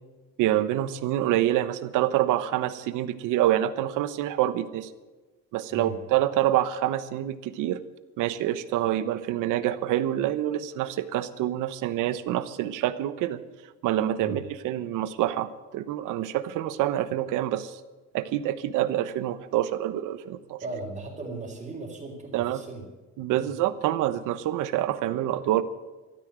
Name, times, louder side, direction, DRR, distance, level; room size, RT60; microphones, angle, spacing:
voice 1, 0.4-4.9 5.5-7.8 8.2-13.4 13.8-17.8 18.1-20.6 22.3-22.6 23.2-25.6, right 13 dB, 80° right, 12 dB, 1.1 m, -26 dB
voice 2, 5.7-6.0 14.2-14.4 20.6-22.8 23.3-23.5, right 3 dB, 25° right, -7 dB, 3.6 m, -37 dB
13.5 x 13.0 x 7.6 m, 1.2 s
cardioid pair, 125°, 31 cm